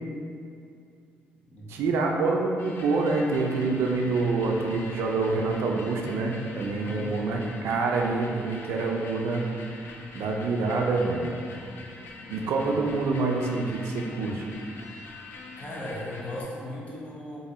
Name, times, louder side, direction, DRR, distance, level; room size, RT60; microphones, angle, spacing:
voice 1, 1.7-9.5 10.1-11.3 12.3-14.4, right 3 dB, 80° right, 1 dB, 0.5 m, -26 dB
sound 1, 2.6-16.4, left 3 dB, 70° left, 0.5 m, -44 dB
voice 2, 6.8-7.3 11.2-11.7 12.2-12.5 15.6-17.4, left 1 dB, 35° left, -5 dB, 1.0 m, -39 dB
3.8 x 2.6 x 4.1 m, 2.4 s
cardioid pair, 125°, 4 cm